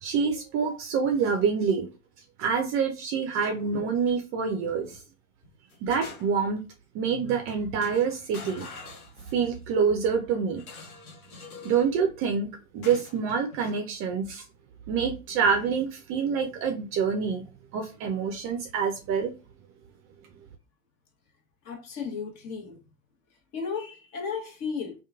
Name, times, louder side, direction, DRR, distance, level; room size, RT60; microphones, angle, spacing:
voice 1, 0.0-1.9 2.4-5.0 5.8-6.6 6.9-8.6 9.3-10.6 11.6-14.4 14.9-17.4 17.7-19.3, right 6 dB, 35° right, 0.5 m, -26 dB
sound 1, 4.6-5.0 5.4-6.6 7.3-7.5 7.8-9.6 10.6-11.9 12.8-13.8, left 3 dB, 85° left, 0.9 m, -45 dB
voice 2, 21.6-22.8 23.5-24.9, left 5 dB, 40° left, 1.0 m, -34 dB
2.8 x 2.3 x 2.4 m
figure-of-eight pair, 85°, 41 cm